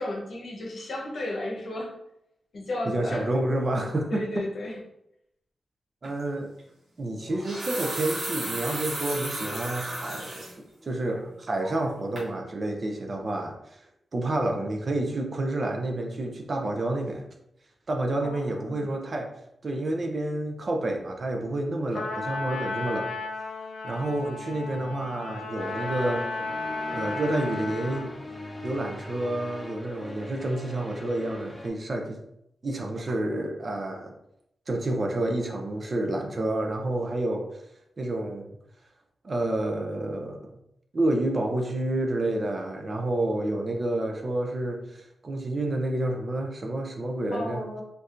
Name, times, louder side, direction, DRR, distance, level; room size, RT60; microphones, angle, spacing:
voice 1, 0.0-1.9 2.5-3.3 4.1-4.8 18.2-18.9 47.3-47.8, left 1 dB, 55° left, -1 dB, 0.8 m, -33 dB
voice 2, 2.8-4.4 6.0-6.5 7.0-10.4 10.8-13.6 14.1-17.3 17.9-19.3 19.6-23.1 23.8-26.2 26.9-28.1 28.6-32.2 32.6-34.1 34.7-37.5 38.0-38.5 39.2-40.5 40.9-45.0 45.2-47.6, right 1 dB, 35° right, 3 dB, 0.4 m, -29 dB
sound 1, 6.0-6.2 7.2-10.5 11.0-11.1 11.6-11.9 12.2-12.3, right 1 dB, 50° right, 1.3 m, -34 dB
Trumpet, 21.9-28.2, left 3 dB, 75° left, 0.4 m, -34 dB
sound 2, 25.6-31.7, left 1 dB, 20° left, 0.5 m, -41 dB
4.5 x 2.5 x 2.4 m, 0.79 s
wide cardioid pair, 175°, 0 cm